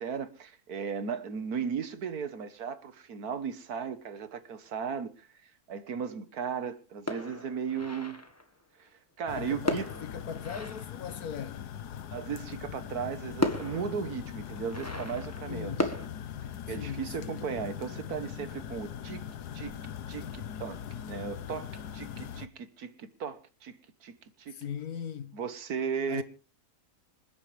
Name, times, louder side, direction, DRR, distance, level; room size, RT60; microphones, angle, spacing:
voice 1, 0.0-8.2 8.8-8.9 9.2-9.9 12.1-15.9 16.7-19.2 19.5-19.7 20.1-24.6 25.3-26.2, right 6 dB, 75° right, 1.7 m, -36 dB
sound 1, 7.1-8.5 9.7-11.6 12.8-12.9 13.4-16.1, left 1 dB, 10° left, 1.5 m, -35 dB
sound 2, 9.3-22.5, left 9 dB, 85° left, 1.4 m, -41 dB
voice 2, 9.3-11.7 15.5-15.9 16.7-17.5 24.5-25.4 26.1-26.2, left 8 dB, 70° left, 1.5 m, -40 dB
26.5 x 10.5 x 3.4 m
omnidirectional pair, 1.7 m